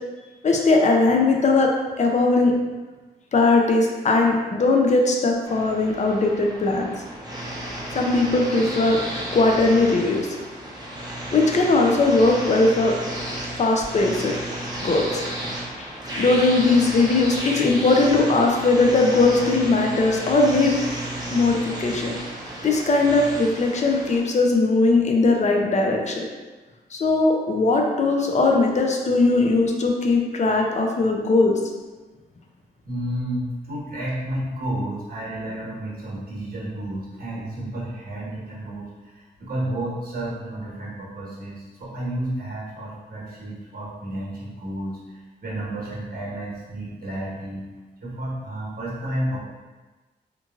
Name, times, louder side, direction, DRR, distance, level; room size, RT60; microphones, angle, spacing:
voice 1, 0.4-1.7 2.0-2.5 3.3-6.9 7.9-9.0 9.3-10.3 11.3-12.9 13.6-14.3 14.8-15.2 15.8-20.7 21.3-22.1 22.6-26.2 26.9-31.5, left 3 dB, 40° left, 1 dB, 0.5 m, -19 dB
sound 1, 5.4-24.2, right 1 dB, 20° right, 0.6 m, -33 dB
voice 2, 32.8-47.6 48.0-49.4, right 1 dB, 55° right, -6 dB, 1.0 m, -31 dB
3.0 x 2.5 x 2.4 m, 1.3 s
cardioid pair, 90°, 18 cm